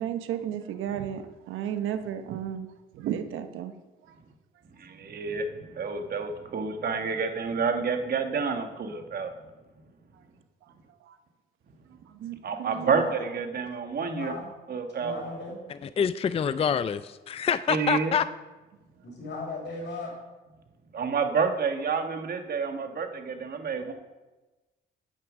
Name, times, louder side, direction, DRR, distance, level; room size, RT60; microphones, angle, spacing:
voice 1, 0.0-3.7 10.6-10.7 11.0-11.2 11.9-13.1, right 10 dB, 90° right, 1.0 m, -34 dB
voice 2, 4.8-9.3 12.4-14.3 14.7-15.1 17.7-18.1 20.9-23.9, right 5 dB, 50° right, 1.5 m, -29 dB
voice 3, 12.7-13.1 14.1-14.5 15.0-15.6 19.0-20.1, left 3 dB, 65° left, 4.9 m, -37 dB
voice 4, 16.0-18.2, left 7 dB, 30° left, 0.4 m, -26 dB
9.5 x 9.1 x 6.2 m
cardioid pair, 90°, 20 cm